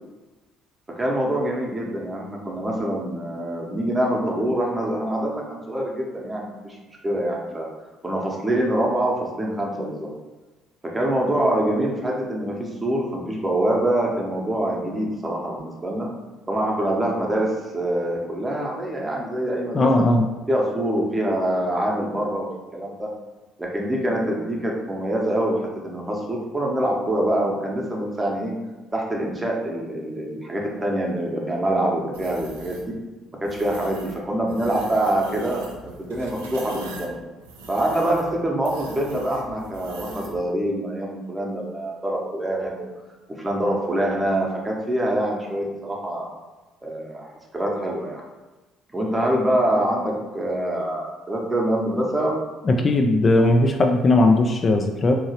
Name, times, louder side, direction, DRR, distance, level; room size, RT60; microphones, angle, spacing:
voice 1, 1.0-6.8 7.0-7.7 8.0-9.9 10.8-16.1 16.5-20.0 20.5-22.5 22.7-23.1 23.6-28.5 28.9-32.8 33.4-37.1 37.7-42.9 43.4-46.3 46.8-47.3 47.5-48.2 48.9-52.3, right 1 dB, 20° right, -2 dB, 0.8 m, -25 dB
voice 2, 19.7-20.3 52.7-55.2, left 2 dB, 40° left, 3 dB, 0.3 m, -18 dB
sound 1, 32.1-32.9 33.4-34.2 34.5-40.4, right 3 dB, 80° right, 0.4 m, -41 dB
2.9 x 2.7 x 2.8 m, 1.2 s
hypercardioid pair, 55°, 0 cm